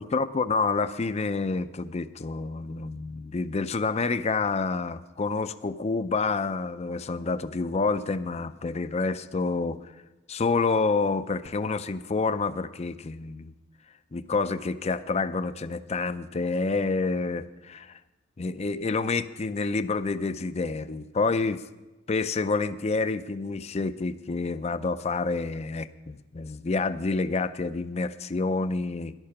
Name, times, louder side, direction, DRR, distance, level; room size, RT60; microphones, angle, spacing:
voice 1, 0.0-9.9 10.3-13.5 14.1-18.0 18.4-21.6 22.1-29.1, left 4 dB, 35° left, 12 dB, 0.5 m, -28 dB
13.5 x 11.0 x 5.7 m, 1.1 s
head